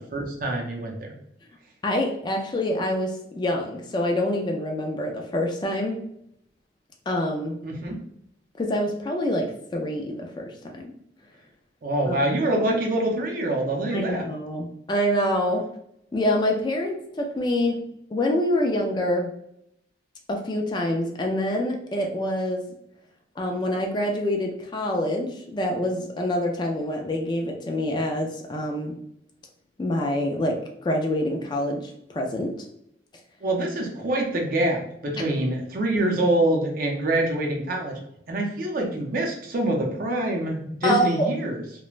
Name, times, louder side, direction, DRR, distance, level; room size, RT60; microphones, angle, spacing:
voice 1, 0.1-1.1 7.6-8.0 11.8-14.2 33.4-38.0 38.3-41.6, right 1 dB, 50° right, 1 dB, 0.5 m, -25 dB
voice 2, 1.8-6.0 7.1-7.6 8.6-10.9 12.1-12.2 13.9-15.7 16.1-17.8 18.1-19.3 20.3-22.6 23.4-28.9 29.8-32.5 40.8-41.3, left 1 dB, 25° left, 1 dB, 0.3 m, -26 dB
3.1 x 2.1 x 2.3 m, 0.75 s
head